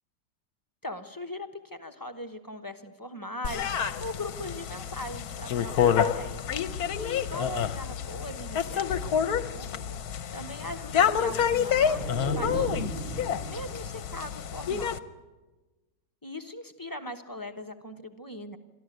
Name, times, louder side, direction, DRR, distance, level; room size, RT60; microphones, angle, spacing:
voice 1, 0.8-6.4 7.0-15.0 16.2-18.6, left 1 dB, 15° left, 5 dB, 0.8 m, -40 dB
sound 1, 3.4-15.0, left 8 dB, 60° left, 1.3 m, -28 dB
sound 2, 11.5-14.4, right 3 dB, 40° right, 0.9 m, -36 dB
23.0 x 14.0 x 9.3 m, 1.2 s
omnidirectional pair, 1.9 m